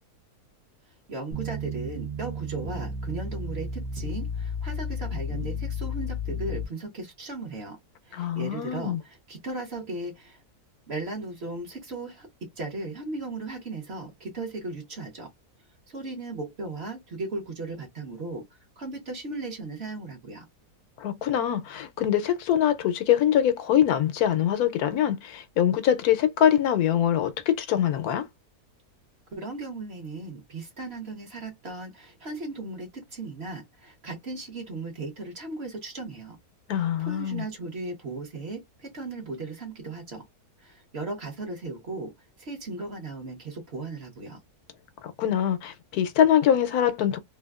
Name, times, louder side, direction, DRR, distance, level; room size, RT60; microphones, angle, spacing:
voice 1, 1.1-7.8 8.0-10.4 10.9-12.3 12.6-15.3 15.9-18.4 18.8-20.4 29.3-36.4 36.7-40.2 40.6-42.1 42.4-44.4, right 3 dB, 45° right, 1.1 m, -36 dB
sound 1, 1.3-6.6, left 2 dB, 75° right, 1.2 m, -33 dB
voice 2, 8.1-9.0 21.0-28.3 36.7-37.4 45.2-47.2, left 10 dB, 80° left, 1.1 m, -23 dB
3.4 x 2.2 x 2.3 m
omnidirectional pair, 1.7 m